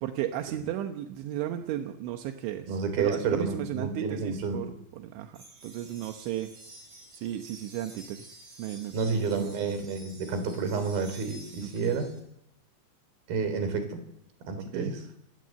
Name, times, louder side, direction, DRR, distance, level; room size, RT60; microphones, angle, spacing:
voice 1, 0.0-6.5 7.1-8.3 8.6-9.5 11.6-12.0 14.7-15.0, right 12 dB, 80° right, 5 dB, 3.5 m, -35 dB
voice 2, 2.7-4.7 8.9-12.1 13.3-14.0 14.5-15.0, right 5 dB, 55° right, 9 dB, 5.3 m, -30 dB
sound 1, 5.3-12.2, right 2 dB, 30° right, 7.5 m, -51 dB
27.0 x 18.5 x 7.7 m, 0.79 s
omnidirectional pair, 5.3 m